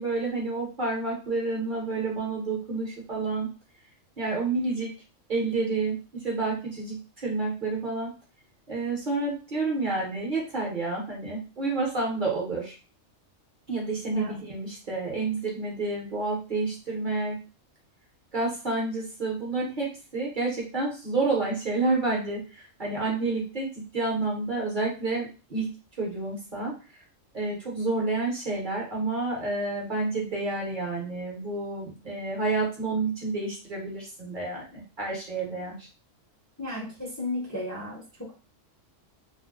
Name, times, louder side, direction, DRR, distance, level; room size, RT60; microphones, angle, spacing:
voice 1, 0.0-3.5 4.2-4.9 5.3-8.1 8.7-12.7 13.7-17.4 18.3-26.7 27.3-35.9, right 3 dB, 40° right, -2 dB, 1.0 m, -29 dB
voice 2, 36.6-38.0, left 1 dB, 15° left, -4 dB, 0.7 m, -33 dB
2.6 x 2.2 x 3.6 m, 0.35 s
omnidirectional pair, 1.3 m